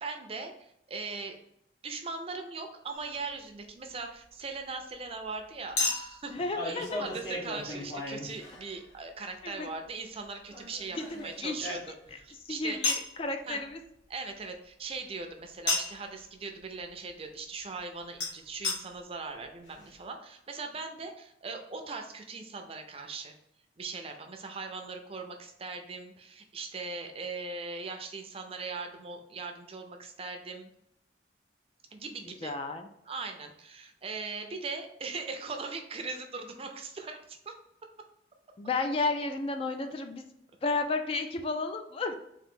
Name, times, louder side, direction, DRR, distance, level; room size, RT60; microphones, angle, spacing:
voice 1, 0.0-1.4 1.8-12.8 13.5-13.6 14.1-23.3 23.8-30.7 31.9-32.5 33.1-37.6, right 4 dB, 30° right, 5 dB, 0.5 m, -40 dB
Chink clink, 2.9-3.1 5.8-8.9 10.5-12.2 12.8-13.1 15.7-16.1 18.2-18.3 18.6-18.8 19.4-19.5 19.7-19.8, left 2 dB, 75° left, 1.3 m, -33 dB
voice 2, 6.3-7.0 9.4-9.7 10.9-11.8 12.1-13.8 32.4-32.9 38.6-40.2 40.6-42.1, left 3 dB, 30° left, 6 dB, 0.3 m, -33 dB
3.8 x 2.6 x 3.6 m, 0.78 s
head